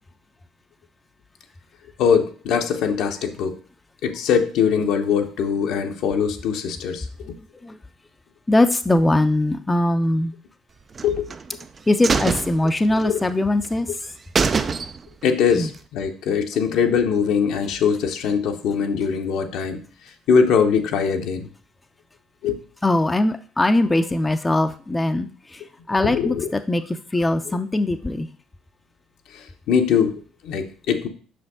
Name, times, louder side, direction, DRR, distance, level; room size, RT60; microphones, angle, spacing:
voice 1, 2.0-3.6 4.0-7.3 11.0-11.3 12.9-13.2 15.2-19.8 20.3-21.5 22.4-22.6 26.0-26.5 29.3-31.1, left 6 dB, 65° left, 5 dB, 0.8 m, -22 dB
voice 2, 8.5-10.3 11.9-13.9 15.5-15.7 22.8-25.6 25.9-26.8 27.1-28.3, left 1 dB, 20° left, 8 dB, 0.5 m, -21 dB
sound 1, 11.0-11.6 12.0-13.3 13.6-13.7 14.0-14.1 14.4-15.3 15.6-15.7, right 5 dB, 35° right, 0.4 m, -24 dB
5.9 x 5.1 x 3.6 m, 0.40 s
hypercardioid pair, 55°, 0 cm